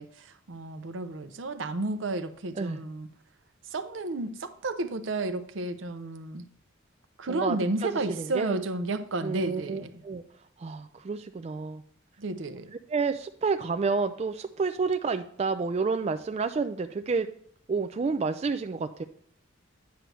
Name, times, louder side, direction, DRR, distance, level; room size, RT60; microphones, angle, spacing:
voice 1, 0.0-3.1 3.7-6.5 7.2-10.0 12.2-12.7, right 2 dB, 70° right, 9 dB, 0.7 m, -32 dB
voice 2, 7.8-8.6 9.2-10.2 10.6-11.8 12.9-17.3 17.7-19.0, right 4 dB, 35° right, 8 dB, 0.3 m, -29 dB
9.3 x 6.2 x 3.3 m, 0.63 s
head